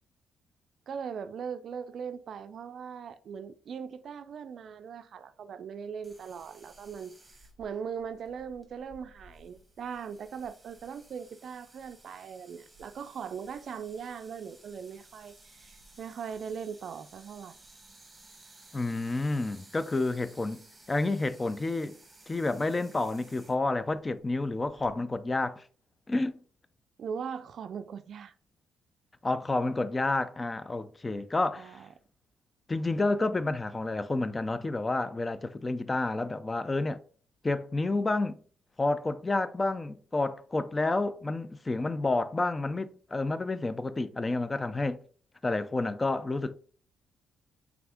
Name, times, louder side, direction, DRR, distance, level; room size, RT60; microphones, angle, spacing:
voice 1, 0.9-7.1 7.6-17.6 27.0-28.3 31.6-31.9, right 7 dB, 60° right, 0.4 m, -40 dB
sound 1, 6.0-25.0, right 2 dB, 15° right, 1.2 m, -57 dB
voice 2, 18.7-22.0 22.3-25.6 26.1-26.3 29.2-31.8 32.7-37.0 37.4-38.4 38.8-45.0 45.4-46.5, left 2 dB, 25° left, 0.4 m, -30 dB
3.5 x 3.5 x 3.4 m
cardioid pair, 90°, 0 cm